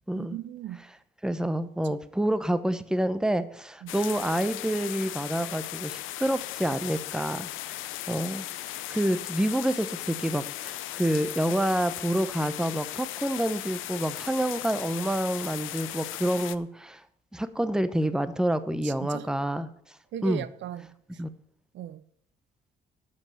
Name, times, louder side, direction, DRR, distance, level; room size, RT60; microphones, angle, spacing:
voice 1, 0.1-0.9 3.8-3.9 18.8-19.3 20.1-21.2 21.7-22.0, right 11 dB, 70° right, 0.6 m, -38 dB
voice 2, 1.2-7.8 8.1-8.5 8.9-17.0 17.3-19.7 20.2-20.4 21.2-21.3, right 1 dB, 5° right, 0.8 m, -28 dB
sound 1, 3.9-16.6, left 15 dB, 90° left, 0.5 m, -37 dB
12.0 x 5.3 x 7.7 m
cardioid pair, 90°, 20 cm